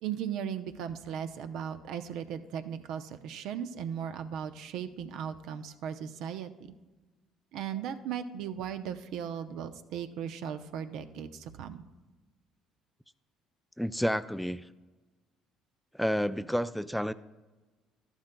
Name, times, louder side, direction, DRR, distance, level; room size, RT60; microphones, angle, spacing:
voice 1, 0.0-6.5 7.5-11.8, right 8 dB, 70° right, 9 dB, 0.6 m, -37 dB
voice 2, 13.8-14.6 16.0-17.1, equal, ahead, 14 dB, 0.3 m, -30 dB
12.5 x 11.5 x 2.2 m, 1.2 s
supercardioid pair, 70°, 0 cm